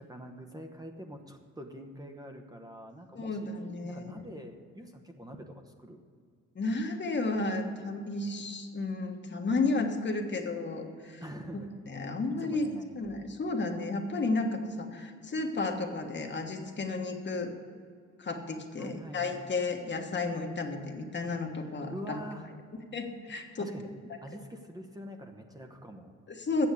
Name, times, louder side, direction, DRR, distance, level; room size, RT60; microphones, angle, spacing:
voice 1, 0.0-3.5 3.8-6.0 11.2-11.7 12.4-12.9 18.8-19.4 21.9-22.5 23.6-23.9 24.2-26.1, equal, 10° right, 3 dB, 0.9 m, -45 dB
voice 2, 3.1-4.1 6.5-11.2 11.5-11.6 11.9-12.7 12.9-17.5 18.2-22.2 22.9-23.7 24.1-24.2 26.3-26.7, left 3 dB, 35° left, 3 dB, 1.3 m, -32 dB
8.6 x 7.0 x 8.2 m, 2.2 s
cardioid pair, 90°, 30 cm